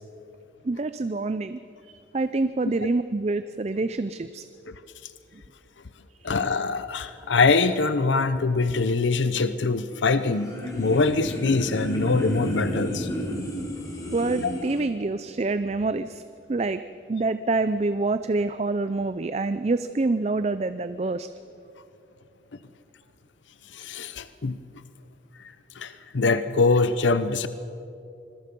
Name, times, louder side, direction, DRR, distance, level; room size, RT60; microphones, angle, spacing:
voice 1, 0.6-4.5 5.3-5.4 6.2-6.3 14.1-16.2 16.5-16.8 17.1-21.3, right 3 dB, 35° right, 12 dB, 0.4 m, -26 dB
voice 2, 6.2-13.1 14.4-14.5 23.7-24.6 25.8-27.5, left 3 dB, 85° left, 12 dB, 0.7 m, -23 dB
sound 1, 9.9-14.8, equal, 20° left, 3.3 m, -32 dB
26.0 x 21.0 x 5.3 m, 2.7 s
head